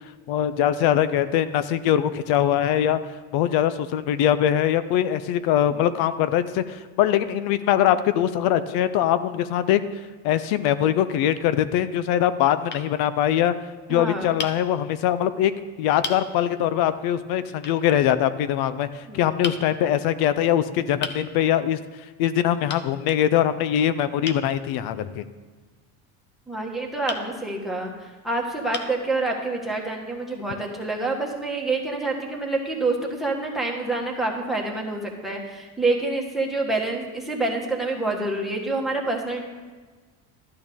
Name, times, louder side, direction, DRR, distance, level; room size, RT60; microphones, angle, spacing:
voice 1, 0.3-3.0 3.3-9.8 10.2-13.5 13.9-15.5 15.8-21.8 22.2-25.2, left 11 dB, 60° left, 13 dB, 0.6 m, -22 dB
sound 1, 12.7-12.9 14.4-14.6 15.4-15.5 16.0-16.2 17.6-17.8 19.4-19.6 21.0-21.2 22.7-22.9 24.2-24.5 27.1-27.3 28.1-28.2 28.7-29.0, left 4 dB, 25° left, 0.8 m, -33 dB
voice 2, 13.9-14.4 19.1-19.2 26.5-39.4, right 2 dB, ahead, 1 dB, 1.6 m, -27 dB
12.5 x 8.6 x 3.6 m, 1.4 s
supercardioid pair, 120°, 43 cm